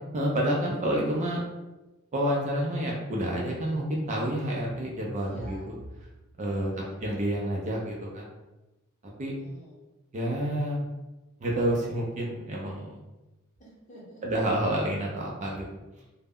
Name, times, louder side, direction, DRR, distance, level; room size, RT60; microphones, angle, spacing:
voice 1, 0.1-1.4 2.1-5.8 6.4-6.7 7.0-8.3 9.2-9.3 10.1-10.8 11.4-13.0 14.2-15.7, right 1 dB, 35° right, -2 dB, 0.4 m, -29 dB
voice 2, 5.2-5.7 6.6-7.0 9.2-9.8 13.6-14.2, equal, 35° left, -5 dB, 0.8 m, -50 dB
2.1 x 2.0 x 3.4 m, 1.1 s
head